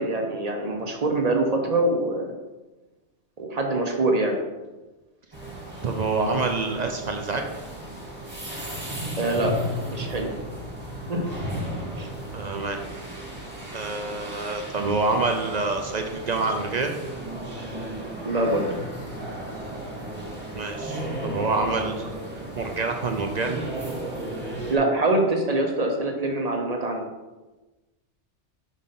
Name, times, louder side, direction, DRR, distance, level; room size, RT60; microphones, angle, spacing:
voice 1, 0.0-2.3 3.4-4.4 9.2-9.5 9.9-10.4 11.1-11.4 12.0-12.1 18.2-18.7 24.7-27.1, right 2 dB, 40° right, 3 dB, 0.8 m, -24 dB
sound 1, 5.3-24.8, right 1 dB, 20° right, 1.7 m, -35 dB
voice 2, 5.8-7.4 12.3-12.8 13.7-16.9 20.5-22.1 22.6-23.6, right 3 dB, 55° right, 4 dB, 0.5 m, -27 dB
5.1 x 3.9 x 5.7 m, 1.1 s
omnidirectional pair, 1.2 m